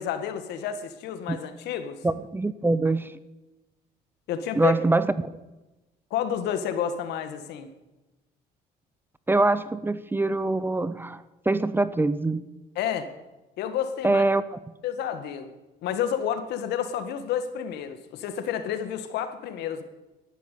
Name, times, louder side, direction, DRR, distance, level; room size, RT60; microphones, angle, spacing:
voice 1, 0.0-2.0 4.3-4.8 6.1-7.7 12.8-13.1 13.6-14.2 14.8-15.5 15.8-19.8, left 9 dB, 80° left, 9 dB, 1.8 m, -30 dB
voice 2, 2.0-3.1 4.6-5.3 9.3-12.5 14.0-14.6, right 2 dB, 10° right, 16 dB, 0.7 m, -24 dB
13.0 x 11.5 x 8.5 m, 1.1 s
cardioid pair, 110°, 17 cm